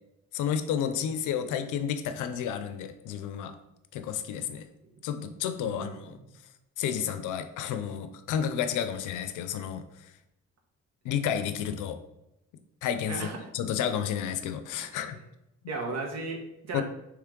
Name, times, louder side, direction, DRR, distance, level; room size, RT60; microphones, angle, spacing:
voice 1, 0.3-3.6 3.9-4.6 5.0-6.2 6.8-9.8 11.0-12.0 12.8-13.3 13.5-15.2 16.7-16.8, left 8 dB, 85° left, 9 dB, 0.5 m, -31 dB
voice 2, 5.6-6.2 13.1-13.5 14.8-15.2 15.7-16.8, right 3 dB, 60° right, 2 dB, 1.1 m, -36 dB
4.6 x 3.2 x 3.6 m, 0.87 s
cardioid pair, 90°, 30 cm